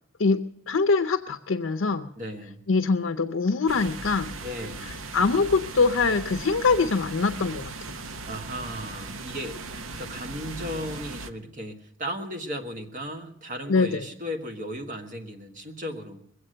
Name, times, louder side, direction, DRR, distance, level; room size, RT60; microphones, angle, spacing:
voice 1, 0.7-2.1 2.7-4.4 4.8-8.0 13.7-14.1, left 4 dB, 70° left, 6 dB, 0.6 m, -24 dB
voice 2, 2.2-2.6 4.4-5.0 8.3-9.6 9.9-16.2, equal, 40° right, 4 dB, 1.6 m, -36 dB
sound 1, 3.7-11.3, right 3 dB, 80° right, 0.8 m, -38 dB
21.5 x 8.1 x 7.8 m, 0.75 s
head